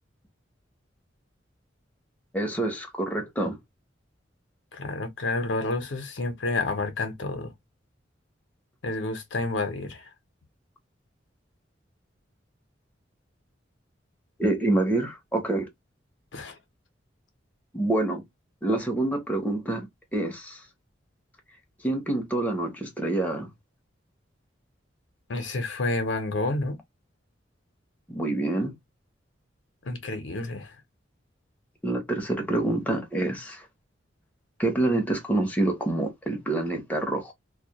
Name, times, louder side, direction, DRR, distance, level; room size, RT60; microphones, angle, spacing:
voice 1, 2.3-3.6 14.4-15.7 17.7-18.2 18.6-19.9 20.1-20.6 21.8-23.5 28.1-28.7 31.8-33.6 34.6-37.3, right 2 dB, 10° left, 0.6 m, -27 dB
voice 2, 4.7-7.5 8.8-10.1 16.3-16.6 25.3-26.8 29.8-30.8, left 2 dB, 75° left, 0.6 m, -29 dB
2.1 x 2.1 x 2.7 m
head